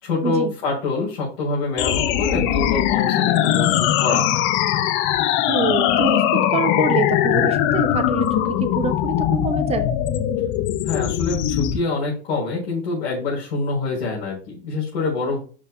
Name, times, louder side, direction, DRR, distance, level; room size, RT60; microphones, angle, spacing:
voice 1, 0.0-4.5 10.8-15.4, left 3 dB, 60° left, -6 dB, 4.5 m, -25 dB
sound 1, 1.8-11.8, left 11 dB, 35° left, 1.0 m, -20 dB
voice 2, 5.5-9.9, right 6 dB, 20° right, 10 dB, 1.0 m, -26 dB
11.5 x 5.8 x 2.3 m, 0.38 s
figure-of-eight pair, 100°, 32 cm